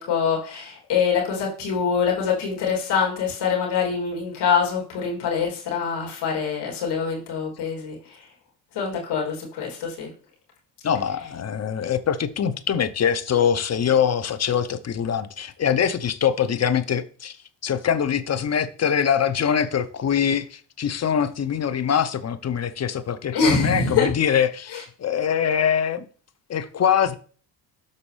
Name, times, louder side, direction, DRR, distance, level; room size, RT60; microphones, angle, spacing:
voice 1, 0.0-8.2 8.7-10.1 23.3-24.1 24.7-24.8, left 6 dB, 65° left, 3.1 m, -24 dB
voice 2, 10.8-17.4 17.6-26.0 26.5-27.2, left 8 dB, 35° left, 0.9 m, -23 dB
12.5 x 4.1 x 3.3 m
hypercardioid pair, 55°, 44 cm